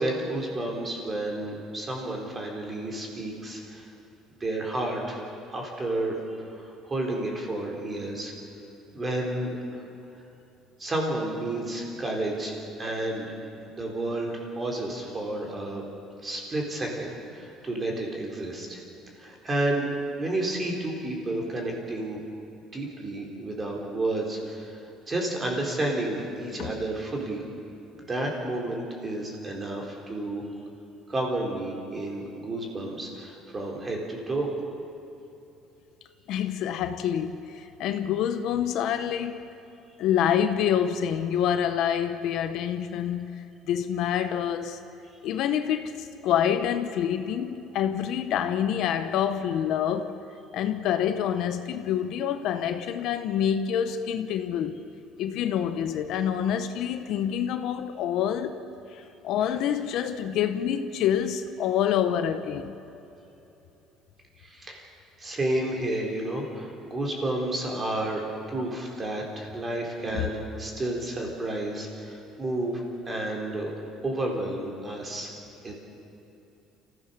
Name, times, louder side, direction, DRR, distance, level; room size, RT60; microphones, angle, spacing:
voice 1, 0.0-3.8 4.4-5.2 5.5-6.2 6.5-8.3 8.9-9.5 10.8-13.3 13.7-15.8 16.2-18.8 19.2-19.9 20.2-22.2 22.7-24.8 25.1-27.4 27.9-30.4 31.1-34.5 64.4-64.8 65.2-72.8 73.1-73.7 74.0-75.3 75.6-75.7, right 1 dB, 20° right, 3.9 m, -31 dB
voice 2, 36.3-39.5 40.0-44.8 45.2-50.2 50.5-54.8 55.2-58.6 58.9-62.8 70.1-70.3, left 9 dB, 60° left, 1.1 m, -27 dB
29.5 x 15.5 x 6.9 m
cardioid pair, 155°, 0 cm